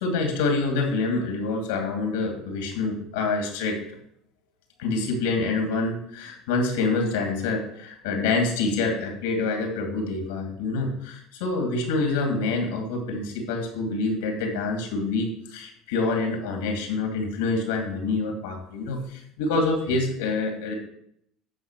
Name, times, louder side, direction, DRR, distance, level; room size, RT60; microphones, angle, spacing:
voice 1, 0.0-3.8 4.8-20.7, left 3 dB, 90° left, 3 dB, 2.3 m, -26 dB
9.7 x 3.8 x 6.7 m, 0.69 s
supercardioid pair, 105°, 0 cm